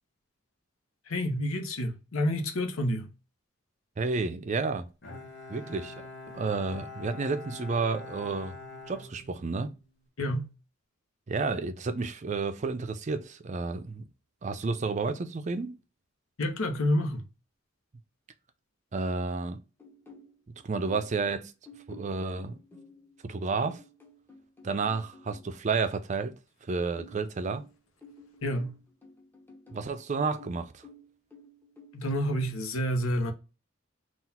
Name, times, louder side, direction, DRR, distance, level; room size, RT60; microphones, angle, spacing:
voice 1, 1.1-3.1 10.2-10.5 16.4-17.2 28.4-28.8 31.9-33.3, equal, 90° left, 1.0 m, -29 dB
voice 2, 4.0-4.9 5.5-6.1 6.3-8.5 8.9-9.8 11.3-14.1 14.4-15.8 18.9-19.6 20.6-21.5 21.9-22.6 23.2-23.8 24.6-26.4 26.7-27.6 29.7-30.8, right 4 dB, 35° right, 0.4 m, -31 dB
Bowed string instrument, 5.0-9.9, left 3 dB, 55° left, 1.1 m, -45 dB
sound 1, 19.8-21.2 21.6-25.5 27.0-29.9 30.4-31.9, left 2 dB, 10° left, 0.8 m, -52 dB
4.0 x 2.4 x 4.2 m
head